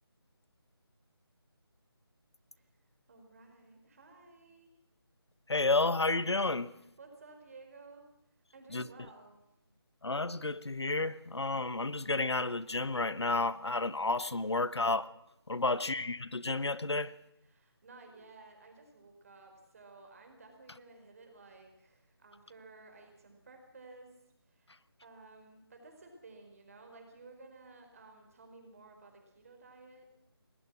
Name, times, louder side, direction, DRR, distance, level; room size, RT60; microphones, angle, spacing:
voice 1, 3.1-4.7 6.8-8.1 8.5-9.5 15.6-16.1 17.4-24.2 24.4-30.1, right 3 dB, 35° right, 4.8 m, -55 dB
voice 2, 5.5-6.7 8.7-8.8 10.0-15.1 15.5-17.1, left 3 dB, 90° left, 1.2 m, -31 dB
22.0 x 20.0 x 6.1 m
figure-of-eight pair, 165°, 14 cm